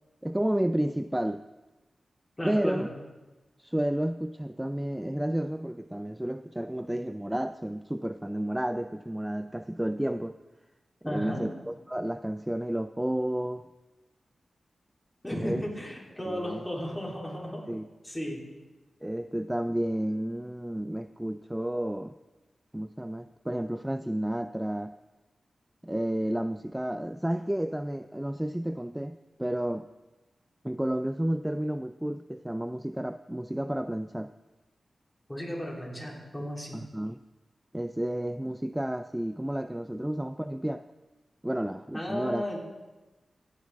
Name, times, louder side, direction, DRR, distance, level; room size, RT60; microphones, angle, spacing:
voice 1, 0.2-1.4 2.4-2.9 3.6-10.4 11.0-13.7 15.4-15.6 16.2-16.6 17.7-17.9 19.0-22.1 22.7-24.9 25.8-29.9 30.6-34.3 36.7-37.2 37.7-40.8 41.4-42.4, right 1 dB, 10° right, 10 dB, 0.3 m, -31 dB
voice 2, 2.4-2.8 11.0-11.4 15.2-17.7 18.0-18.4 35.3-36.8 41.9-42.6, equal, 15° left, -3 dB, 3.8 m, -34 dB
16.5 x 7.3 x 3.7 m, 1.1 s
cardioid pair, 45°, 0 cm